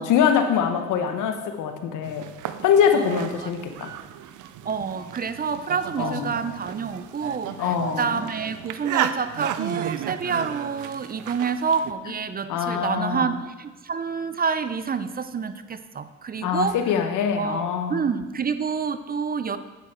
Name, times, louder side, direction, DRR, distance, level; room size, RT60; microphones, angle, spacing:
voice 1, 0.0-2.3 2.6-3.9 6.0-6.3 7.6-8.1 12.5-13.3 16.4-18.1, left 7 dB, 90° left, 7 dB, 1.1 m, -23 dB
sound 1, 2.0-11.9, right 10 dB, 80° right, 0.6 m, -34 dB
voice 2, 2.9-3.5 4.6-16.8 17.4-19.6, right 6 dB, 30° right, 11 dB, 0.6 m, -28 dB
9.1 x 8.9 x 4.4 m, 1.2 s
cardioid pair, 90°, 30 cm